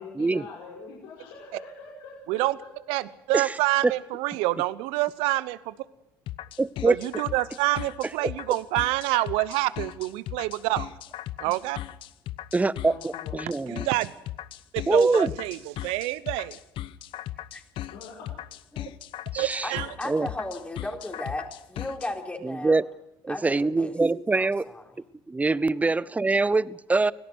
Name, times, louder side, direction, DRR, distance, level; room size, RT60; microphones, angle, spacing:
voice 1, 0.0-2.7 11.4-11.5 12.8-13.5 17.9-18.3, left 4 dB, 80° left, -4 dB, 5.8 m, -44 dB
voice 2, 2.9-5.7 6.8-10.9 11.4-11.8 13.7-14.1 14.7-16.6 19.4-19.9, right 18 dB, 75° right, 17 dB, 0.9 m, -27 dB
sound 1, 6.3-22.1, left 13 dB, 65° left, 0.9 m, -37 dB
voice 3, 6.6-7.0 12.5-13.9 14.9-15.3 19.3-19.7 20.0-20.3 22.4-22.9 23.2-24.7 25.3-27.1, right 3 dB, 15° right, 20 dB, 0.7 m, -24 dB
voice 4, 20.0-22.8 23.3-23.9 24.3-24.8, left 2 dB, 15° left, 1 dB, 4.2 m, -35 dB
25.0 x 17.5 x 6.3 m, 0.82 s
supercardioid pair, 75°, 9 cm